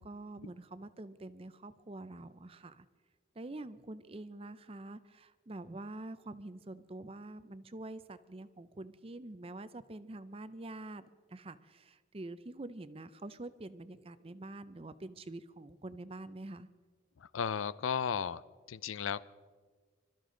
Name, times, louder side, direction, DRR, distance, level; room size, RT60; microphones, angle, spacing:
voice 1, 0.0-2.9 3.3-16.7, right 2 dB, 30° right, 14 dB, 0.5 m, -46 dB
voice 2, 17.2-18.4 18.7-19.2, left 7 dB, 90° left, 17 dB, 0.5 m, -35 dB
25.5 x 13.5 x 3.8 m, 1.5 s
head